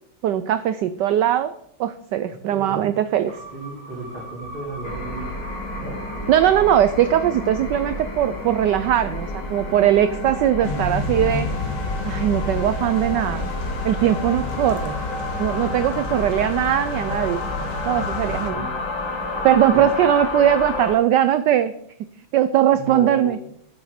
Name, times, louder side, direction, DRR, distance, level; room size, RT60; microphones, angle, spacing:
voice 1, 0.2-1.5 1.8-3.4 6.3-11.5 12.0-13.5 13.8-15.0 15.4-17.5 17.8-18.7 19.4-21.7 22.3-23.4, right 10 dB, 85° right, 12 dB, 0.9 m, -20 dB
voice 2, 2.5-2.9 3.5-5.3 5.8-6.0 18.3-18.7 19.7-20.0 22.7-23.4, right 2 dB, 65° right, -2 dB, 3.5 m, -34 dB
sound 1, 3.3-9.6, right 1 dB, 5° left, 4.8 m, -42 dB
sound 2, 4.8-20.9, left 2 dB, 55° left, 2.8 m, -30 dB
sound 3, 10.6-18.5, left 3 dB, 85° left, 2.3 m, -30 dB
10.5 x 7.1 x 5.1 m, 0.68 s
omnidirectional pair, 2.4 m